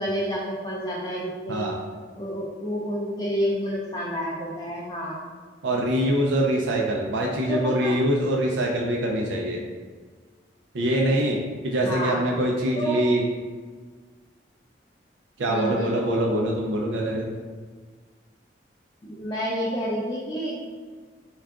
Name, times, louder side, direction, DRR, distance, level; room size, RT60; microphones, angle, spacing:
voice 1, 0.0-1.7 2.2-5.2 7.5-7.9 11.8-12.2 12.7-13.1 15.5-16.0 19.0-20.6, equal, 25° left, -5 dB, 0.4 m, -29 dB
voice 2, 5.6-9.6 10.7-11.4 11.6-13.3 15.4-17.3, right 1 dB, 85° right, -1 dB, 0.4 m, -24 dB
3.5 x 2.3 x 3.6 m, 1.5 s
head